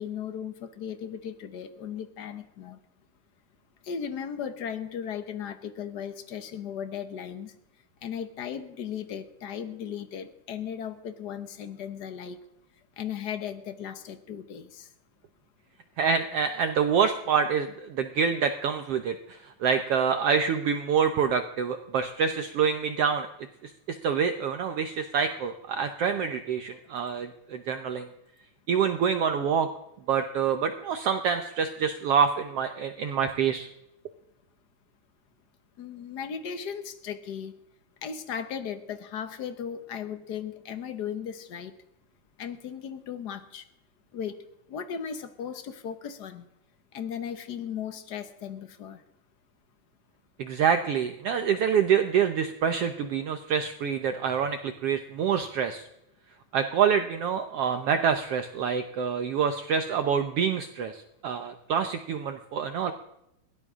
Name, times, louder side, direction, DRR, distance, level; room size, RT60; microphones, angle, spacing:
voice 1, 0.0-2.8 3.8-7.5 8.0-12.4 13.0-14.9 35.8-37.5 38.0-41.7 42.4-43.7 44.1-44.4 44.7-46.4 46.9-49.0, left 8 dB, 75° left, 9 dB, 0.9 m, -36 dB
voice 2, 16.0-23.3 23.6-28.1 28.7-29.7 30.1-33.7 50.4-55.8 56.5-62.9, right 7 dB, 65° right, 8 dB, 1.6 m, -26 dB
22.0 x 17.5 x 3.7 m, 0.82 s
omnidirectional pair, 3.5 m